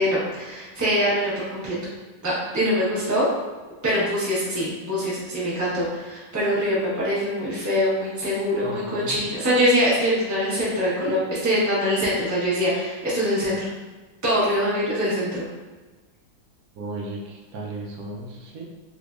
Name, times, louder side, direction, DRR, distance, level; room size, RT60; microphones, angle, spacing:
voice 1, 0.0-1.7 2.2-3.3 3.8-13.7 14.2-15.4, equal, 15° right, -8 dB, 0.6 m, -23 dB
voice 2, 8.6-9.4 16.8-18.7, right 2 dB, 75° right, -2 dB, 0.8 m, -35 dB
3.4 x 3.3 x 2.5 m, 1.3 s
omnidirectional pair, 2.2 m